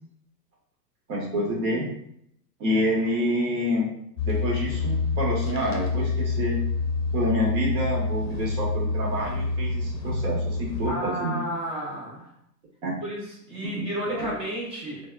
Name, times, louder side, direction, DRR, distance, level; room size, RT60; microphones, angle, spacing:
voice 1, 1.1-1.8 2.6-3.9 4.2-6.6 7.1-11.4 12.8-12.9 13.7-14.3, equal, 60° right, -3 dB, 1.4 m, -27 dB
sound 1, 4.2-10.9, left 3 dB, 90° left, 0.7 m, -27 dB
voice 2, 10.8-12.3 13.0-15.0, equal, 15° right, -4 dB, 0.4 m, -32 dB
3.4 x 2.3 x 2.3 m, 0.72 s
hypercardioid pair, 110°, 50 cm